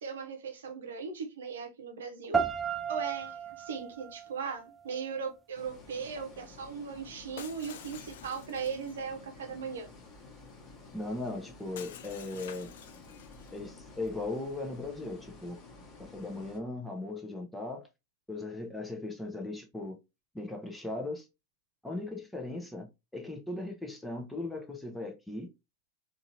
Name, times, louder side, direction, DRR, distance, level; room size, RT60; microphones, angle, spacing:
voice 1, 0.0-2.4 2.9-9.9, right 6 dB, 65° right, 0.8 m, -38 dB
sound 1, 2.3-5.3, right 6 dB, 10° right, 0.4 m, -34 dB
sound 2, 5.5-16.6, left 3 dB, 30° left, 1.2 m, -52 dB
Shatter, 7.4-9.0 11.8-13.6, left 9 dB, 55° left, 0.4 m, -49 dB
voice 2, 10.9-12.7 13.5-15.6 16.0-17.9 18.3-20.0 20.3-21.3 21.8-25.5, left 2 dB, 5° left, 0.7 m, -38 dB
3.8 x 2.6 x 2.7 m
figure-of-eight pair, 90°, 0 cm